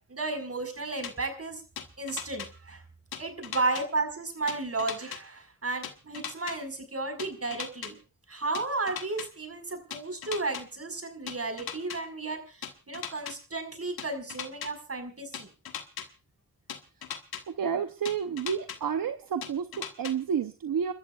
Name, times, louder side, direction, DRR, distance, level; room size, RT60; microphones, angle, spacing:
voice 1, 0.1-1.6 2.0-2.8 3.2-8.0 8.3-15.5, right 3 dB, 40° right, 6 dB, 5.3 m, -33 dB
sound 1, 1.0-1.1 1.8-2.5 3.1-3.8 4.5-5.2 5.8-6.6 7.2-7.9 8.5-9.3 9.9-10.6 11.3-12.0 12.6-13.3 14.0-14.7 15.3-16.1 16.7-17.4 18.1-18.8 19.4-20.1, left 8 dB, 90° left, 1.4 m, -38 dB
voice 2, 17.5-20.9, right 7 dB, 70° right, 8 dB, 0.9 m, -30 dB
29.5 x 13.0 x 2.4 m, 0.35 s
cardioid pair, 45°, 35 cm